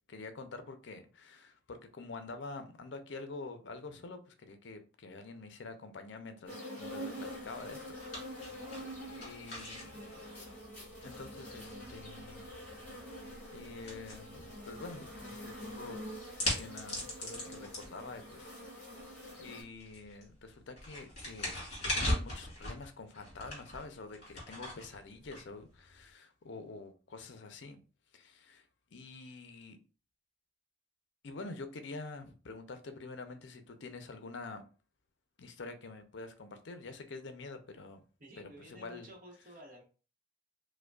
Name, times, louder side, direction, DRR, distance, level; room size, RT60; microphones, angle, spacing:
voice 1, 0.1-7.9 8.5-8.7 9.1-10.0 11.0-12.5 12.9-13.2 13.5-16.0 16.4-18.5 19.4-21.5 21.9-27.8 28.1-28.6 28.9-29.8 31.2-34.6 35.4-38.0 38.6-39.1, left 3 dB, 60° left, 0.5 m, -47 dB
sound 1, 6.5-19.6, equal, 10° left, 1.7 m, -46 dB
sound 2, 6.8-26.0, left 1 dB, 35° left, 1.8 m, -42 dB
voice 2, 8.6-8.9 38.2-39.8, right 1 dB, 45° right, 0.9 m, -53 dB
4.8 x 2.1 x 2.3 m
head